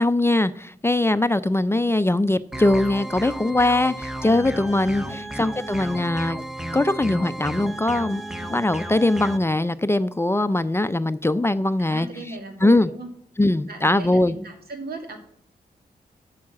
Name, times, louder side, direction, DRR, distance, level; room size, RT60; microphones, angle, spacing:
voice 1, 0.0-6.4 6.7-8.2 8.5-12.1 12.6-12.9 13.4-14.3, left 2 dB, 15° left, 12 dB, 0.5 m, -21 dB
sound 1, 2.5-9.4, right 1 dB, 5° right, 0.9 m, -33 dB
voice 2, 5.0-5.4 11.8-13.1 13.6-15.2, right 2 dB, 75° right, 4 dB, 2.3 m, -37 dB
8.7 x 7.2 x 7.3 m, 0.64 s
cardioid pair, 75°, 16 cm